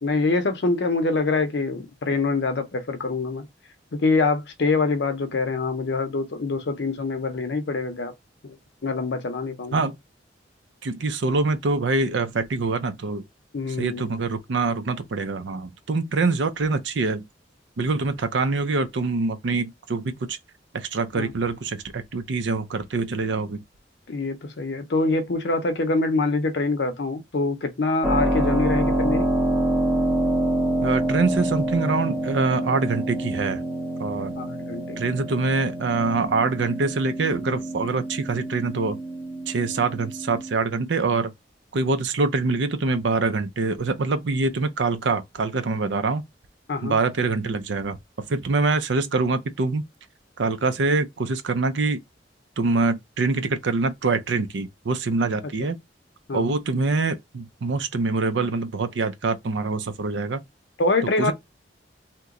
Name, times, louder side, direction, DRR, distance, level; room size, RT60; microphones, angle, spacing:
voice 1, 0.0-3.5 3.9-8.1 8.4-8.6 8.8-9.9 13.5-14.1 21.2-21.3 24.1-29.3 34.4-35.1 46.7-46.9 56.3-56.5 60.8-61.3, left 3 dB, 70° left, 0.6 m, -25 dB
voice 2, 10.8-13.2 13.8-17.2 17.8-20.4 20.7-23.6 30.8-33.6 34.0-34.3 35.0-39.0 39.5-41.3 41.7-46.2 46.8-48.0 48.3-49.8 50.4-52.0 52.6-55.8 56.3-60.4 61.2-61.3, right 3 dB, 80° right, 0.5 m, -24 dB
Keyboard (musical), 28.0-40.6, right 1 dB, 10° right, 0.6 m, -26 dB
2.9 x 2.2 x 3.6 m
head